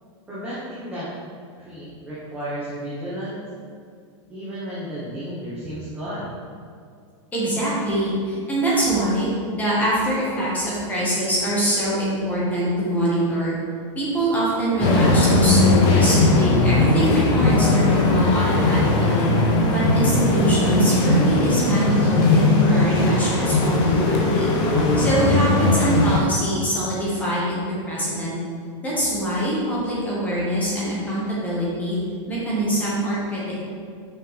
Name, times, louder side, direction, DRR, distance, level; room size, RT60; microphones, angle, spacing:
voice 1, 0.3-1.1 1.6-3.4 4.3-6.4, equal, 10° right, -10 dB, 1.1 m, -33 dB
voice 2, 7.3-9.3 9.5-13.6 13.9-19.3 19.7-24.5 25.0-28.4 28.8-32.0 32.3-33.4, right 1 dB, 10° left, -7 dB, 1.5 m, -24 dB
sound 1, 14.8-26.2, left 2 dB, 25° left, 0.8 m, -18 dB
6.5 x 6.1 x 3.4 m, 2.3 s
supercardioid pair, 170°, 16 cm